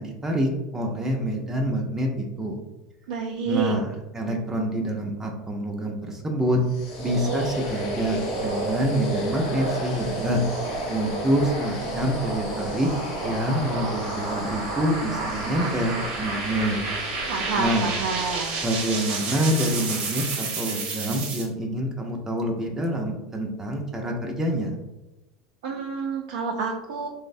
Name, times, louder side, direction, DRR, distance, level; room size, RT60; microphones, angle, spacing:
voice 1, 0.0-2.6 3.5-6.6 7.0-10.4 10.9-12.9 13.2-16.8 17.6-17.9 18.6-24.7, right 1 dB, 15° right, 1 dB, 0.5 m, -26 dB
voice 2, 3.1-3.7 17.3-18.6 25.6-27.1, right 4 dB, 75° right, 0 dB, 0.3 m, -28 dB
sound 1, 6.6-19.3, left 2 dB, 65° left, 0.6 m, -39 dB
sound 2, 6.9-21.5, right 3 dB, 50° right, 0.8 m, -30 dB
3.1 x 2.0 x 2.6 m, 0.98 s
supercardioid pair, 105°, 3 cm